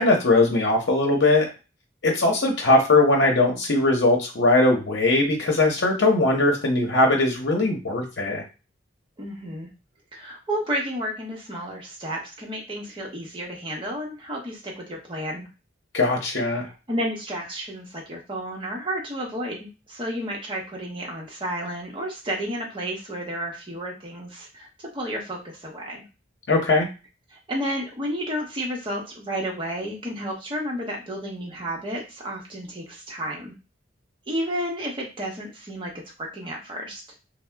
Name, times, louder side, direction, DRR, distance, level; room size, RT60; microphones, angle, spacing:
voice 1, 0.0-1.5 2.0-8.4 15.9-16.7 26.5-26.9, left 2 dB, 60° left, 1 dB, 0.8 m, -20 dB
voice 2, 9.2-9.7 10.1-15.5 16.9-24.7 24.9-26.0 27.3-33.5 34.3-35.9 36.2-37.0, equal, 25° right, -1 dB, 0.9 m, -31 dB
2.7 x 2.1 x 3.4 m, 0.30 s
head